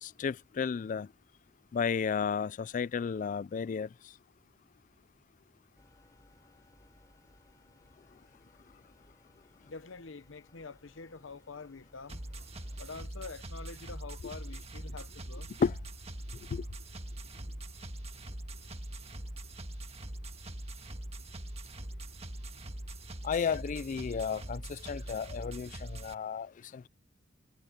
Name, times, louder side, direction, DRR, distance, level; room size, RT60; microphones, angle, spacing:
voice 1, 0.0-1.1 1.7-3.9 15.6-15.8 16.5-16.6 23.2-26.9, left 6 dB, 40° left, 0.3 m, -33 dB
sound 1, 5.8-13.1, left 1 dB, 20° left, 3.7 m, -64 dB
voice 2, 9.6-12.2 12.8-15.5 17.4-17.5, left 4 dB, 75° left, 0.9 m, -46 dB
sound 2, 12.1-26.1, right 1 dB, 35° right, 1.6 m, -43 dB
head